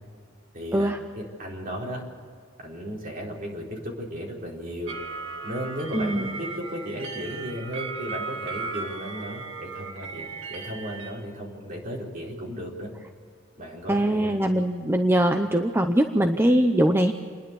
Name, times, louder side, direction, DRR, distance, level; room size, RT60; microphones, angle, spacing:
voice 1, 0.5-2.0 2.6-4.9 5.4-12.9 13.6-14.4, equal, 45° right, -2 dB, 4.5 m, -35 dB
sound 1, 4.9-11.1, right 4 dB, 75° right, 2.1 m, -36 dB
voice 2, 5.9-6.4 13.9-17.1, right 1 dB, 10° right, 6 dB, 0.7 m, -22 dB
28.5 x 11.0 x 8.4 m, 2.1 s
head